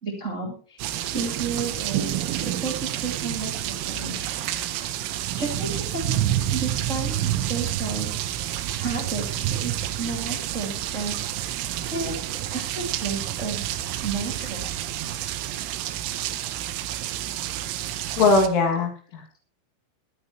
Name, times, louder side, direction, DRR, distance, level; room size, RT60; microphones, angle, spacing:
voice 1, 0.0-0.8 1.1-4.3 5.3-6.2 6.5-8.1 8.8-11.1 11.9-13.7 14.0-14.7 16.3-16.4, right 4 dB, 30° right, -1 dB, 1.3 m, -32 dB
sound 1, 0.8-18.5, right 12 dB, 85° right, 3.3 m, -29 dB
voice 2, 18.2-19.4, left 3 dB, 75° left, 2 dB, 5.0 m, -21 dB
21.5 x 9.7 x 3.1 m, 0.41 s
omnidirectional pair, 5.7 m